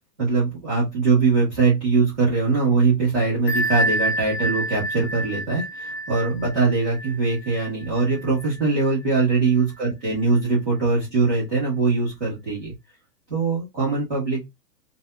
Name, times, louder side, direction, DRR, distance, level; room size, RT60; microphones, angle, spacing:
voice 1, 0.2-12.7 13.3-14.5, right 4 dB, 5° left, -7 dB, 0.5 m, -22 dB
Bell, 3.5-8.9, right 1 dB, 40° left, 0.8 m, -28 dB
2.8 x 2.3 x 2.3 m, 0.21 s
hypercardioid pair, 175°, 50 cm